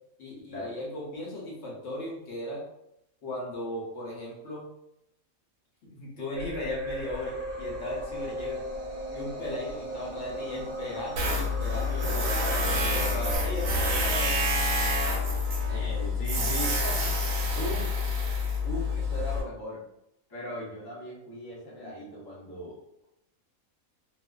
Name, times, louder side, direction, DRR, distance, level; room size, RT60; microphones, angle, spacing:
voice 1, 0.2-2.6 3.2-4.7 6.0-8.6 9.1-14.4 21.8-21.9, left 1 dB, 60° left, -4 dB, 0.9 m, -36 dB
sound 1, 6.4-13.4, right 1 dB, 60° right, 0.6 m, -37 dB
Tools, 11.2-19.4, left 2 dB, 75° right, 1.0 m, -27 dB
Wind instrument woodwind instrument, 11.6-16.3, right 1 dB, 85° left, 1.1 m, -44 dB
voice 2, 15.7-17.2 17.4-18.0 18.6-19.8 20.3-23.1, equal, 25° left, -6 dB, 0.5 m, -38 dB
2.3 x 2.3 x 2.2 m, 0.82 s
omnidirectional pair, 1.5 m